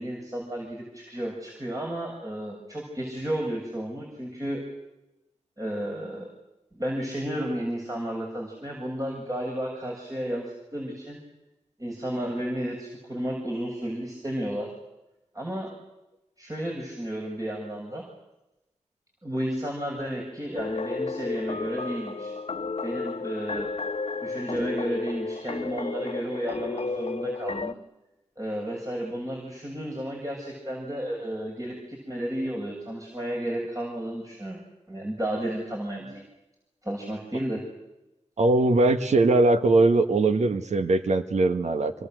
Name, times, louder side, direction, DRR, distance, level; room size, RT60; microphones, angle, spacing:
voice 1, 0.0-4.6 5.6-6.3 6.7-11.2 11.8-14.7 15.3-15.7 16.4-18.0 19.2-22.3 22.8-23.7 24.2-27.7 28.4-34.6 34.9-36.2 36.8-37.6, right 1 dB, 30° right, -1 dB, 7.5 m, -32 dB
sound 1, 20.6-27.7, left 4 dB, 60° left, 1.0 m, -32 dB
voice 2, 38.4-41.9, right 2 dB, 90° right, 8 dB, 1.6 m, -21 dB
28.0 x 25.0 x 8.1 m, 0.97 s
cardioid pair, 45°, 12 cm